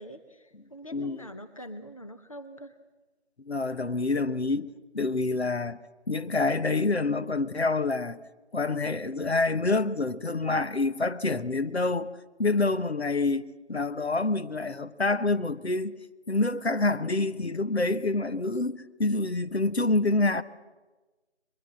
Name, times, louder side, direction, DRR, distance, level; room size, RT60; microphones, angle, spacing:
voice 1, 0.0-2.8, equal, 30° left, 0.9 m, -44 dB
voice 2, 3.4-5.8 6.1-8.2 8.5-12.1 12.4-16.0 16.3-20.4, left 3 dB, 65° left, 1.2 m, -27 dB
22.5 x 22.0 x 7.6 m
figure-of-eight pair, 170°, 35 cm